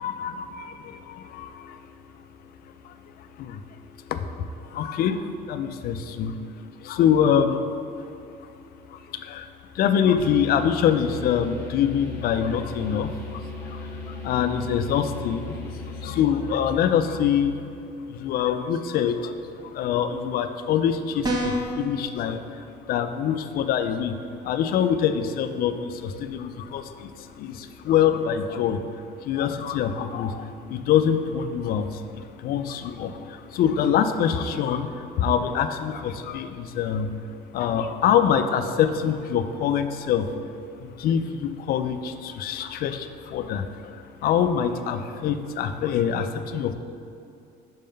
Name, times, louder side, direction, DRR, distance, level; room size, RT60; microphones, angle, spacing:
voice 1, 0.0-1.8 2.8-3.6 4.0-7.7 8.0-8.1 8.4-8.5 8.9-17.5 18.1-40.3 40.8-46.7, left 8 dB, 55° left, 9 dB, 0.4 m, -25 dB
sound 1, 10.2-17.8, left 2 dB, 15° left, 1.1 m, -37 dB
sound 2, 21.2-21.8, right 1 dB, 20° right, 0.7 m, -25 dB
5.5 x 3.7 x 5.2 m, 2.7 s
cardioid pair, 135°, 18 cm